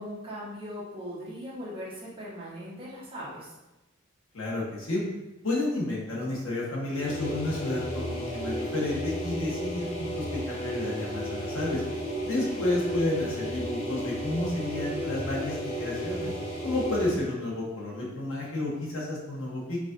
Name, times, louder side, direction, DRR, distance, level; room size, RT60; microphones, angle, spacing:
voice 1, 0.0-3.5, equal, 25° right, -7 dB, 1.0 m, -39 dB
voice 2, 4.3-5.0 5.4-11.8 12.2-16.3 16.6-19.8, left 2 dB, 75° left, -4 dB, 1.1 m, -31 dB
sound 1, 6.9-17.3, equal, 35° left, 0.7 m, -33 dB
4.8 x 2.4 x 2.5 m, 1.0 s
head